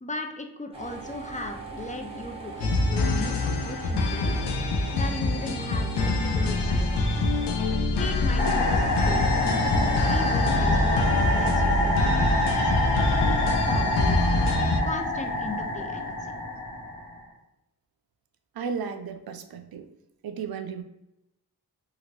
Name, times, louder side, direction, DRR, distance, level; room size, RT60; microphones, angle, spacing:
voice 1, 0.0-7.2 7.9-9.4 9.8-12.7 13.3-14.1 14.8-16.3, left 2 dB, 20° left, 4 dB, 0.4 m, -37 dB
sound 1, 0.7-7.7, right 4 dB, 15° right, 1.0 m, -40 dB
sound 2, 2.6-14.8, left 2 dB, 85° left, 0.5 m, -25 dB
sound 3, 8.4-17.2, left 1 dB, 40° left, 1.3 m, -26 dB
voice 2, 18.6-19.9 20.2-20.8, right 6 dB, 65° right, 8 dB, 0.5 m, -34 dB
2.9 x 2.5 x 2.8 m, 0.88 s
cardioid pair, 55°, 40 cm